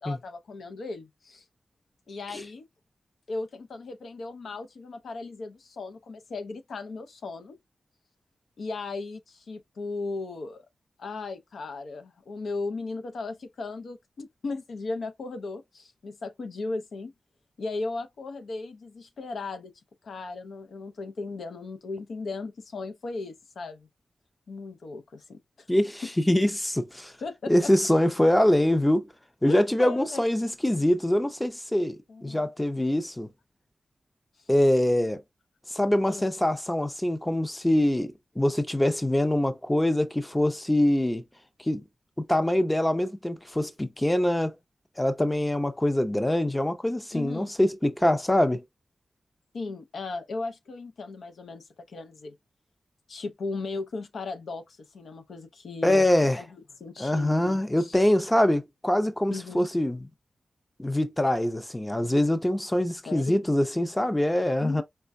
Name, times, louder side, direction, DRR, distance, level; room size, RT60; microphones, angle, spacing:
voice 1, 0.0-1.4 2.1-2.6 3.3-7.6 8.6-10.6 11.0-17.1 17.6-19.7 20.0-23.9 24.5-25.7 27.2-27.7 29.5-30.2 32.1-32.4 36.1-36.3 47.1-47.5 49.5-52.4 53.1-56.1 56.4-56.5 56.8-58.0 59.3-59.7 63.0-63.5 64.6-64.8, left 3 dB, 90° left, 0.6 m, -36 dB
voice 2, 25.7-27.1 27.5-29.1 29.4-33.3 34.5-35.2 35.7-41.2 41.6-41.8 42.2-44.6 45.0-48.6 55.8-56.4 57.0-60.1 60.8-64.8, left 1 dB, 10° left, 0.5 m, -24 dB
4.3 x 2.1 x 2.5 m
wide cardioid pair, 105°, 0 cm